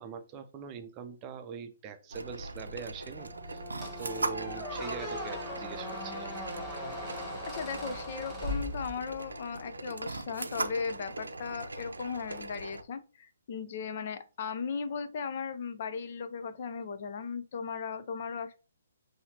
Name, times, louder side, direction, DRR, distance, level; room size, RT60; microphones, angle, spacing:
voice 1, 0.0-3.6 4.0-6.3, right 6 dB, 25° right, 0.5 m, -43 dB
sound 1, 2.1-12.8, right 2 dB, 85° right, 0.5 m, -40 dB
Brass instrument, 3.2-7.6, left 1 dB, 10° right, 1.0 m, -46 dB
Squeak, 3.8-9.3, left 1 dB, 10° left, 1.2 m, -40 dB
voice 2, 7.5-18.6, left 5 dB, 50° left, 0.5 m, -37 dB
5.6 x 2.8 x 2.8 m
hypercardioid pair, 140°, 0 cm